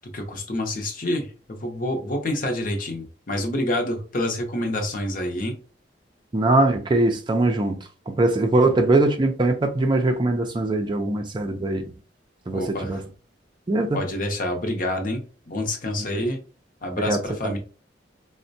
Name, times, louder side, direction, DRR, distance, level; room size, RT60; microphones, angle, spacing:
voice 1, 0.1-5.5 8.6-8.7 12.5-13.0 13.9-16.4 16.8-17.6, left 1 dB, 50° left, 0.7 m, -27 dB
voice 2, 6.3-7.8 8.1-11.9 12.5-13.0 13.7-14.0 16.0-16.2 17.1-17.2 17.4-17.5, right 2 dB, 25° right, 0.4 m, -21 dB
4.1 x 2.1 x 2.6 m
head